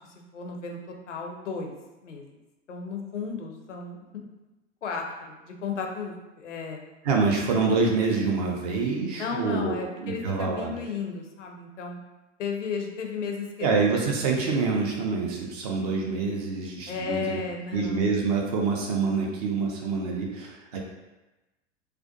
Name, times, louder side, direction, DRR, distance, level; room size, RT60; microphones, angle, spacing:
voice 1, 0.3-1.7 2.0-2.3 2.7-4.3 4.8-6.8 9.2-12.0 12.4-13.7 16.9-18.1, left 5 dB, 75° left, 2 dB, 0.5 m, -34 dB
voice 2, 7.0-10.7 13.6-17.4 17.7-20.8, right 4 dB, 35° right, 0 dB, 0.4 m, -26 dB
2.3 x 2.1 x 2.5 m, 1.1 s
figure-of-eight pair, 90°, 37 cm